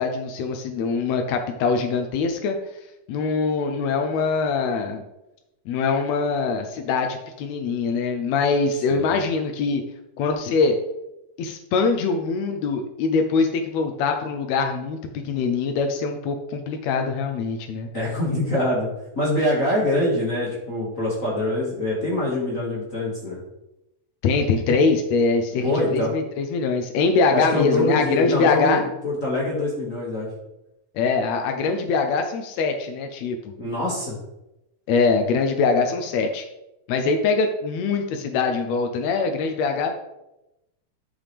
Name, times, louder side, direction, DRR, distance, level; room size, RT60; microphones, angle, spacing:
voice 1, 0.0-2.6 3.1-5.0 5.7-9.8 10.2-10.8 11.4-17.9 24.2-28.8 31.0-33.4 34.9-36.5 36.9-39.9, left 4 dB, 75° left, 5 dB, 1.7 m, -23 dB
voice 2, 17.9-18.9 19.1-23.4 25.6-26.1 27.3-30.3 33.6-34.2, left 1 dB, 30° left, -5 dB, 1.8 m, -24 dB
12.0 x 5.8 x 3.4 m, 0.92 s
omnidirectional pair, 3.7 m